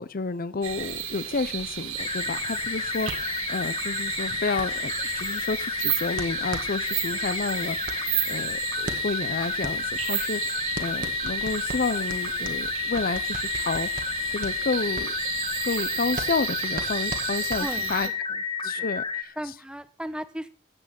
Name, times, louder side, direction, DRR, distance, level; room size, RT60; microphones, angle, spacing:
voice 1, 0.0-13.9 14.3-15.1 15.6-18.1 18.6-19.3, left 4 dB, 45° left, 16 dB, 0.6 m, -30 dB
sound 1, 0.6-18.1, right 10 dB, 80° right, 2.0 m, -33 dB
sound 2, 2.0-19.2, left 5 dB, 25° left, 0.9 m, -31 dB
punching-bag, 3.1-18.2, right 2 dB, 40° right, 1.6 m, -40 dB
voice 2, 17.6-18.9 19.4-20.5, equal, 5° right, 12 dB, 0.8 m, -37 dB
14.0 x 8.8 x 5.9 m, 0.41 s
head